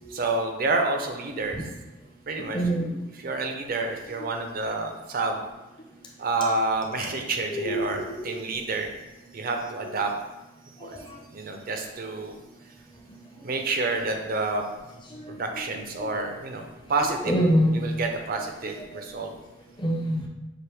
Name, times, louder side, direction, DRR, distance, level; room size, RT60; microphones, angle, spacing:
voice 1, 0.1-1.6 2.3-2.6 3.2-5.4 6.2-8.9 9.3-10.1 10.8-11.0 11.3-12.3 13.4-14.6 15.3-17.4 17.7-19.3, right 3 dB, 40° right, 4 dB, 0.5 m, -29 dB
voice 2, 2.5-3.0 7.5-8.0 8.2-8.3 10.8-11.2 15.1-15.4 16.0-16.1 17.2-17.8 18.9-19.0 19.8-20.3, equal, 20° left, -1 dB, 0.7 m, -25 dB
6.0 x 2.6 x 3.4 m, 1.1 s
head